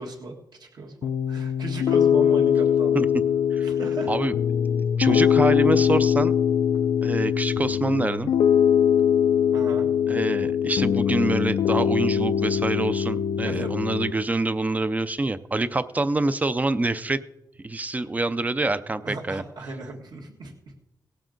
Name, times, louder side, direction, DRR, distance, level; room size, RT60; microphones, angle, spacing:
voice 1, 0.0-3.1 3.6-4.1 9.5-9.9 13.4-13.8 19.0-20.5, right 2 dB, 60° right, 0 dB, 1.7 m, -36 dB
Piano, 1.0-14.1, left 8 dB, 80° left, 0.4 m, -22 dB
voice 2, 5.0-6.3 7.0-8.3 10.1-17.2 17.6-19.4, right 2 dB, 20° right, 13 dB, 0.4 m, -26 dB
18.0 x 7.4 x 3.8 m, 0.89 s
wide cardioid pair, 150°, 8 cm